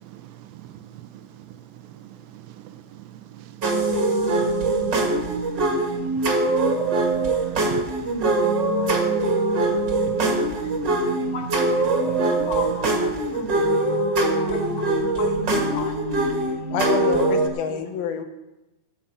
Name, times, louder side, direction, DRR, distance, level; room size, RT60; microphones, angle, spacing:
voice 1, 0.0-12.5 13.2-13.4 13.8-14.1 14.6-15.0 15.3-15.9, right 12 dB, 85° right, 2.5 m, -44 dB
sound 1, 3.6-17.5, right 2 dB, 40° right, 2.0 m, -22 dB
voice 2, 12.1-13.5 14.5-14.9 15.2-16.2 17.7-17.8, left 5 dB, 50° left, 2.1 m, -35 dB
voice 3, 16.7-18.2, left 6 dB, 85° left, 2.9 m, -27 dB
14.5 x 5.9 x 8.7 m
omnidirectional pair, 4.2 m